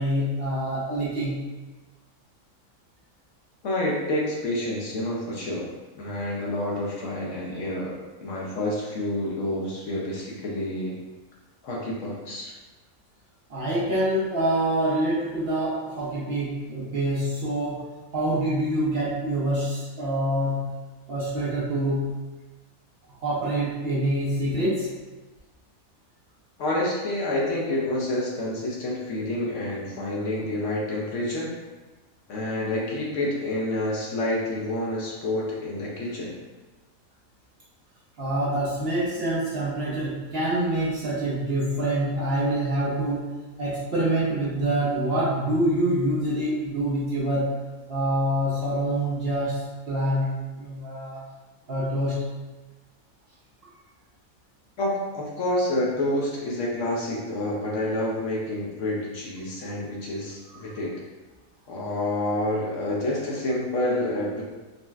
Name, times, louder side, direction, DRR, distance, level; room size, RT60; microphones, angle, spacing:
voice 1, 0.0-1.5 13.5-20.7 21.1-22.1 23.2-24.9 38.2-47.6 47.9-51.2 51.7-52.3 60.6-60.8, right 1 dB, 55° right, -7 dB, 0.8 m, -26 dB
voice 2, 3.6-5.7 6.0-10.9 11.6-12.5 26.6-31.6 32.3-36.3 54.8-61.0 61.7-64.4, left 1 dB, 65° left, -4 dB, 0.9 m, -28 dB
3.9 x 2.1 x 2.3 m, 1.2 s
omnidirectional pair, 1.5 m